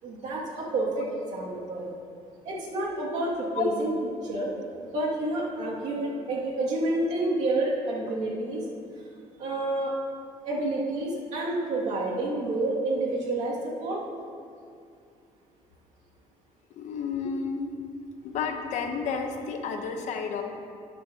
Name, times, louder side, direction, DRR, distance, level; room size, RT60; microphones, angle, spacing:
voice 1, 0.0-1.9 2.4-3.9 4.2-4.5 4.9-8.6 9.4-9.9 10.4-14.0, right 2 dB, 60° right, -5 dB, 2.4 m, -29 dB
voice 2, 16.8-17.7 18.2-20.4, left 6 dB, 65° left, 5 dB, 1.0 m, -31 dB
13.0 x 9.4 x 2.9 m, 2.4 s
cardioid pair, 150°, 13 cm